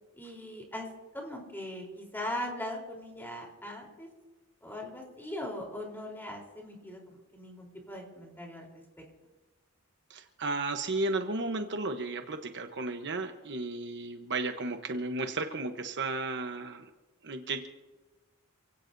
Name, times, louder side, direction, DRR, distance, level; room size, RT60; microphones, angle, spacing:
voice 1, 0.1-0.9 1.1-4.1 4.6-8.8, left 1 dB, 10° left, -1 dB, 3.8 m, -40 dB
voice 2, 10.1-16.9 17.2-17.7, right 2 dB, 55° right, 6 dB, 1.1 m, -34 dB
28.0 x 17.0 x 2.7 m, 1.2 s
head